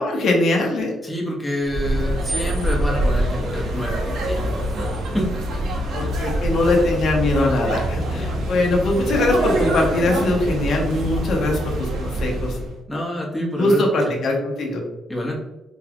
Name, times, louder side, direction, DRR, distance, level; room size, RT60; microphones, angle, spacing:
voice 1, 0.0-0.9 5.9-12.6 13.3-14.8, left 2 dB, 65° left, 1 dB, 1.1 m, -21 dB
voice 2, 1.0-4.9 5.1-5.3 8.1-8.4 12.9-14.2 15.1-15.4, equal, 10° left, -3 dB, 1.3 m, -28 dB
sound 1, 1.6-12.7, right 1 dB, 75° right, 1.1 m, -24 dB
4.4 x 3.3 x 2.4 m, 1.0 s
cardioid pair, 90°, 0 cm